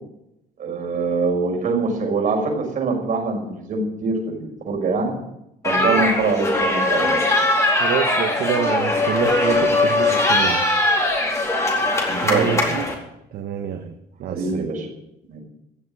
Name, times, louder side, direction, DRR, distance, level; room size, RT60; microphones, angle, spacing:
voice 1, 0.6-5.1 5.6-7.2 12.1-12.7 14.3-14.9 15.3-15.4, right 4 dB, 50° right, 1 dB, 6.1 m, -24 dB
sound 1, 5.6-12.9, left 2 dB, 15° left, 4.2 m, -20 dB
voice 2, 7.8-10.6 12.2-12.9 13.3-14.7, right 8 dB, 65° right, 5 dB, 1.4 m, -27 dB
16.0 x 7.4 x 10.0 m, 0.85 s
cardioid pair, 110°, 17 cm